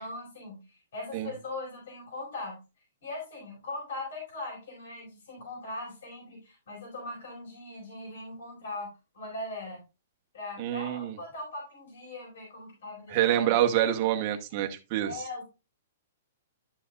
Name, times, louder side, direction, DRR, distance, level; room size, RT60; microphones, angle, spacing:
voice 1, 0.0-2.6 3.0-9.8 10.3-13.7 15.0-15.4, left 2 dB, 60° left, -1 dB, 4.7 m, -40 dB
voice 2, 10.6-11.2 13.1-15.2, right 12 dB, 30° right, 5 dB, 0.8 m, -26 dB
11.5 x 5.9 x 2.3 m, 0.28 s
hypercardioid pair, 175°, 0 cm